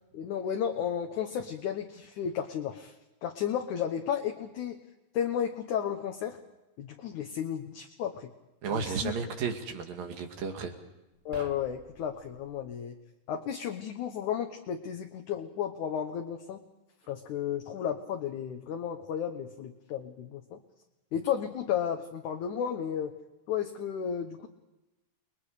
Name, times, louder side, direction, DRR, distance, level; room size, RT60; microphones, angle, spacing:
voice 1, 0.1-2.9 3.2-4.8 5.1-6.4 6.8-8.3 8.7-9.1 11.3-13.0 13.3-16.6 17.1-20.6 21.1-23.1 23.5-24.5, left 8 dB, 65° left, 4 dB, 2.4 m, -33 dB
voice 2, 8.6-10.7, right 5 dB, 75° right, 4 dB, 3.8 m, -33 dB
sound 1, 11.1-12.8, right 4 dB, 45° right, 1.2 m, -50 dB
30.0 x 21.5 x 5.0 m, 0.99 s
omnidirectional pair, 4.1 m